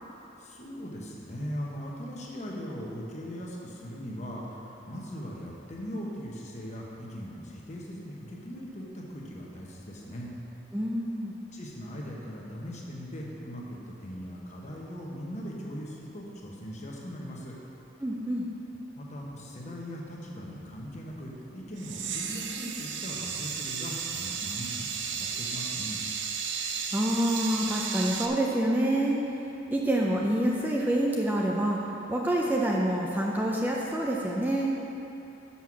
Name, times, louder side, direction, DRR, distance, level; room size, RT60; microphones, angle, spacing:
voice 1, 0.4-10.3 11.5-17.5 19.0-26.0, equal, 40° left, -3 dB, 1.1 m, -39 dB
voice 2, 10.7-11.3 18.0-18.5 26.9-29.2 29.7-31.8 32.1-34.7, right 1 dB, 10° right, -3 dB, 0.5 m, -27 dB
sound 1, 21.8-28.3, right 6 dB, 75° right, 0.6 m, -34 dB
6.2 x 5.6 x 6.1 m, 2.9 s
head